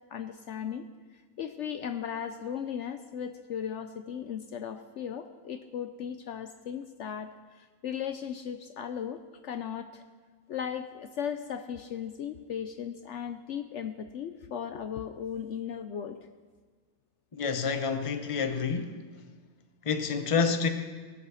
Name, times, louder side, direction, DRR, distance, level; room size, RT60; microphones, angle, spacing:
voice 1, 0.1-0.9 1.4-10.0 10.5-16.2, left 8 dB, 65° left, 8 dB, 0.9 m, -37 dB
voice 2, 17.3-19.0 19.8-20.7, left 5 dB, 30° left, 7 dB, 0.8 m, -28 dB
18.5 x 8.2 x 6.3 m, 1.5 s
omnidirectional pair, 1.4 m